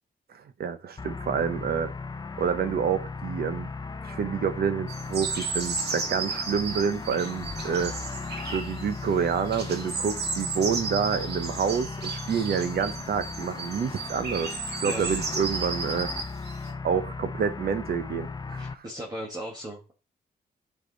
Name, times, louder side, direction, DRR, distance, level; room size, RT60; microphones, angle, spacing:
voice 1, 0.3-1.9 2.4-3.7 4.0-8.0 8.5-16.1 16.8-18.6, right 7 dB, 70° right, 0.9 m, -28 dB
sound 1, 1.0-18.8, left 4 dB, 25° left, 0.6 m, -37 dB
sound 2, 4.9-16.7, right 4 dB, 90° right, 1.9 m, -34 dB
voice 2, 14.8-15.2 18.6-19.9, equal, 25° right, 1.6 m, -37 dB
10.0 x 6.0 x 4.0 m
wide cardioid pair, 125°, 17 cm